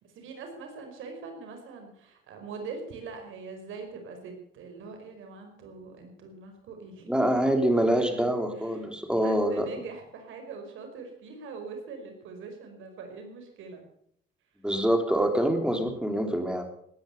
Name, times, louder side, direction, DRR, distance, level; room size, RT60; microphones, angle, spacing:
voice 1, 0.0-8.3 8.6-8.9 9.2-13.8, right 4 dB, 85° right, 4 dB, 4.9 m, -42 dB
voice 2, 7.1-9.7 14.6-16.6, right 1 dB, 5° right, 5 dB, 3.5 m, -25 dB
18.0 x 10.5 x 6.9 m, 0.68 s
cardioid pair, 90°, 20 cm